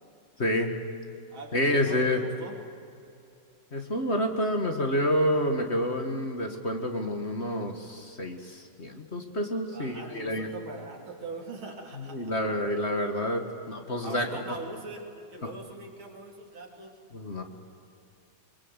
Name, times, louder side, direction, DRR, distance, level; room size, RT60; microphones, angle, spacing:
voice 1, 0.4-0.7 1.5-2.2 3.7-10.5 12.1-14.4 17.1-17.4, equal, 35° left, 4 dB, 1.9 m, -28 dB
voice 2, 1.3-2.6 9.7-12.3 14.0-17.0, right 2 dB, 80° right, 1 dB, 4.0 m, -42 dB
24.5 x 22.0 x 8.2 m, 2.6 s
omnidirectional pair, 2.2 m